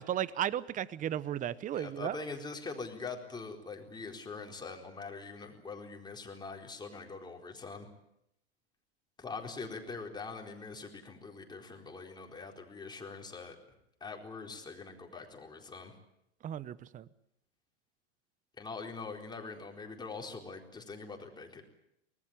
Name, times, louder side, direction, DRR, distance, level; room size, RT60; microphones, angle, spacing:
voice 1, 0.0-2.2 16.4-17.0, right 11 dB, 20° right, 19 dB, 0.9 m, -34 dB
voice 2, 1.7-7.9 9.2-13.6 14.0-15.9 18.6-21.6, left 4 dB, 10° left, 2 dB, 4.2 m, -43 dB
24.5 x 19.5 x 8.9 m, 0.79 s
hypercardioid pair, 115°, 36 cm